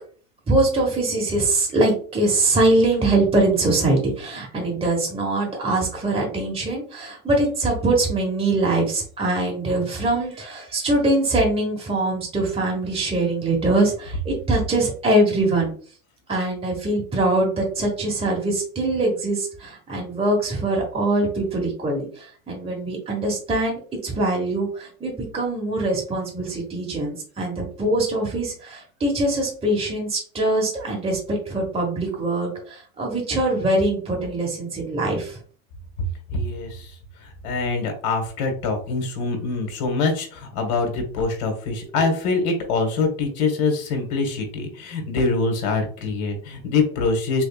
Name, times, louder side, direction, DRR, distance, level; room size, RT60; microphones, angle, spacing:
voice 1, 0.5-15.7 16.3-35.4 41.8-41.9, right 2 dB, 15° right, -1 dB, 1.3 m, -23 dB
voice 2, 36.3-36.9 37.2-47.4, left 3 dB, 55° left, 5 dB, 1.5 m, -24 dB
3.5 x 3.3 x 2.4 m, 0.44 s
hypercardioid pair, 110°, 43 cm